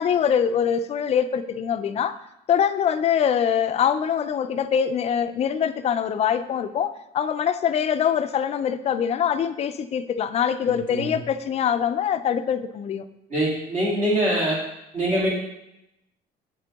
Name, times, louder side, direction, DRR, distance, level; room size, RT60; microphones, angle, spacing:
voice 1, 0.0-2.2 2.5-13.0, left 8 dB, 40° left, 11 dB, 0.4 m, -23 dB
voice 2, 10.7-11.1 13.3-14.6 14.9-15.3, right 1 dB, 45° right, -7 dB, 1.9 m, -24 dB
7.5 x 3.8 x 3.5 m, 0.88 s
cardioid pair, 110°, 17 cm